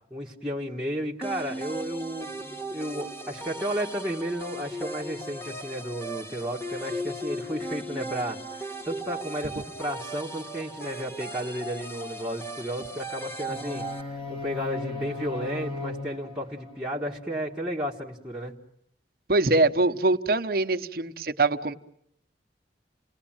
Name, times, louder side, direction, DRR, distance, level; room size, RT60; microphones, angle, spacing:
voice 1, 0.1-18.5, equal, 5° right, -4 dB, 1.6 m, -33 dB
sound 1, 1.2-14.0, right 1 dB, 15° left, 1.6 m, -37 dB
sound 2, 13.5-17.5, left 3 dB, 30° left, 2.6 m, -37 dB
voice 2, 19.3-21.7, right 2 dB, 55° right, 8 dB, 1.0 m, -23 dB
29.5 x 19.0 x 8.9 m, 0.73 s
head